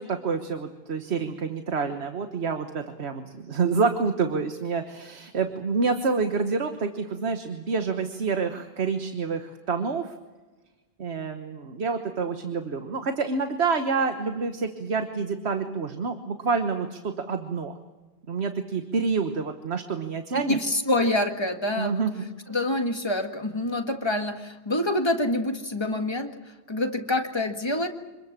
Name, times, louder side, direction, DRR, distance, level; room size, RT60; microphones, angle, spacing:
voice 1, 0.0-10.1 11.0-17.8 18.3-20.6 21.8-22.2, right 4 dB, 90° right, 7 dB, 1.5 m, -28 dB
voice 2, 20.5-22.0 22.5-26.3 26.7-27.9, left 1 dB, 25° left, 5 dB, 1.8 m, -26 dB
26.0 x 21.0 x 7.4 m, 1.2 s
omnidirectional pair, 1.1 m